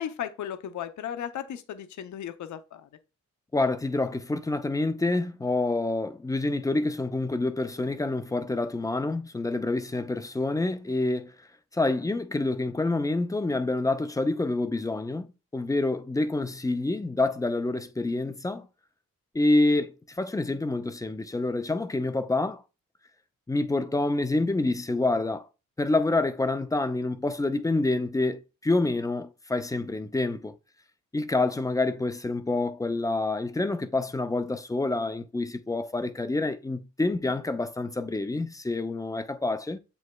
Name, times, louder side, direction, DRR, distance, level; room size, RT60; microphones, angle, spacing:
voice 1, 0.0-2.9, left 9 dB, 60° left, 0.5 m, -35 dB
voice 2, 3.5-11.3 11.7-15.3 15.5-18.7 19.3-22.6 23.5-25.5 25.8-30.5 31.1-39.8, left 2 dB, 10° left, 0.3 m, -27 dB
7.4 x 3.0 x 2.2 m
cardioid pair, 85°, 34 cm